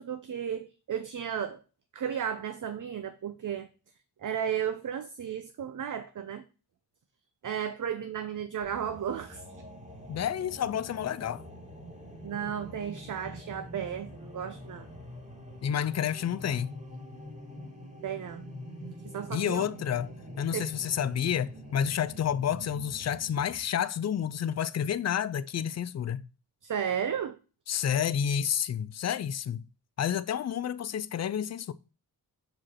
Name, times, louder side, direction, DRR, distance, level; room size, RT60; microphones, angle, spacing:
voice 1, 0.0-1.6 1.9-3.7 4.2-6.4 7.4-9.4 12.2-14.9 18.0-18.4 19.0-19.7 20.5-20.7 26.6-27.4, right 8 dB, 50° right, 0.6 m, -34 dB
sound 1, 8.6-23.6, equal, 20° right, 2.4 m, -45 dB
voice 2, 10.1-11.4 15.6-16.7 19.3-20.1 20.4-26.3 27.7-29.7 30.0-31.7, left 9 dB, 40° left, 0.4 m, -30 dB
6.4 x 4.9 x 4.2 m
wide cardioid pair, 100°, 40 cm